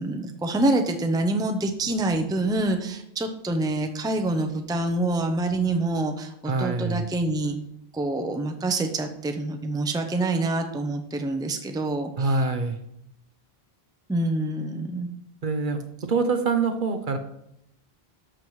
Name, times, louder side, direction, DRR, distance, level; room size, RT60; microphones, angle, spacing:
voice 1, 0.0-7.6 7.9-12.3 14.1-15.1, right 2 dB, 5° right, 5 dB, 0.6 m, -26 dB
voice 2, 6.4-7.0 12.2-12.8 15.4-17.2, right 4 dB, 55° right, 7 dB, 0.9 m, -25 dB
12.5 x 7.4 x 3.2 m, 0.79 s
omnidirectional pair, 1.0 m